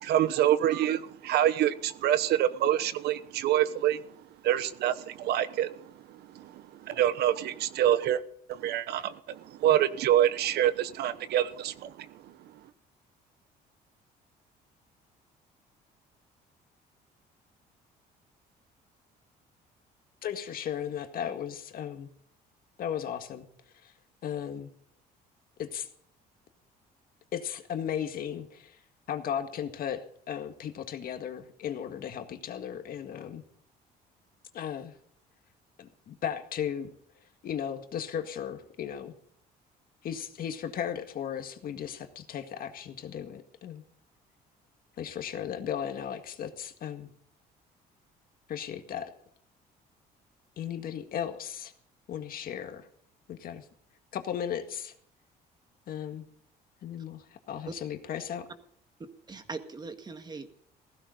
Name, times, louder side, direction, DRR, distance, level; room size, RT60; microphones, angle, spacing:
voice 1, 0.0-4.0 4.4-8.2 8.5-12.1, right 11 dB, 75° right, 14 dB, 1.0 m, -26 dB
voice 2, 20.2-22.1 22.8-23.5 23.8-23.9 24.2-24.7 25.6-25.9 27.3-28.8 29.1-33.4 34.5-34.9 35.8-36.9 37.4-39.1 40.0-43.8 45.0-47.1 48.5-49.1 50.6-51.7 52.1-52.9 53.3-53.6 54.1-54.9 55.9-56.3 56.8-58.5, left 9 dB, 60° left, 7 dB, 1.9 m, -36 dB
voice 3, 59.0-60.6, right 3 dB, 25° right, 8 dB, 1.8 m, -41 dB
16.0 x 15.0 x 4.0 m, 0.64 s
cardioid pair, 110°, 17 cm